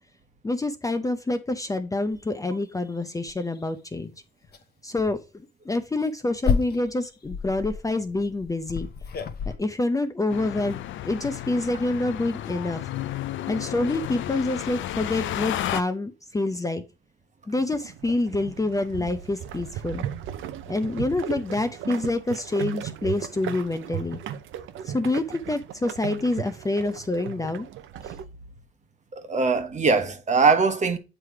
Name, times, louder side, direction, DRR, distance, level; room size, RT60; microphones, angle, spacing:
voice 1, 0.4-4.1 4.8-5.2 5.7-8.9 9.6-10.8 11.0-12.8 13.5-16.8 17.5-20.1 20.7-24.2 24.9-27.7, left 2 dB, 15° left, 0.6 m, -27 dB
sound 1, 2.1-2.2 2.7-2.8 3.2-3.7 4.4-4.6 5.0-5.2 5.8-9.6, left 6 dB, 55° left, 0.9 m, -30 dB
sound 2, 10.3-15.8, left 13 dB, 75° left, 0.5 m, -32 dB
sound 3, 17.5-28.2, right 10 dB, 85° right, 0.7 m, -36 dB
voice 2, 29.2-31.0, right 4 dB, 35° right, 1.1 m, -21 dB
7.5 x 3.2 x 4.6 m
cardioid pair, 90°, 20 cm